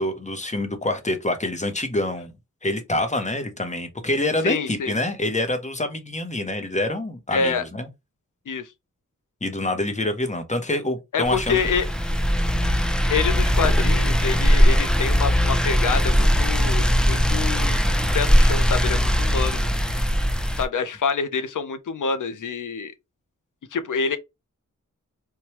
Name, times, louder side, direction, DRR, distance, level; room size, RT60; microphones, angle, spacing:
voice 1, 0.0-2.3 2.6-7.9 9.4-11.6 14.7-14.8, left 1 dB, 20° left, 0.7 m, -26 dB
voice 2, 4.4-4.9 7.3-7.6 8.5-8.7 11.1-11.9 13.1-19.6 20.6-22.9 23.7-24.2, left 5 dB, 75° left, 0.6 m, -26 dB
sound 1, 11.2-20.6, equal, 5° left, 0.4 m, -20 dB
3.1 x 2.2 x 2.9 m
wide cardioid pair, 70°, 32 cm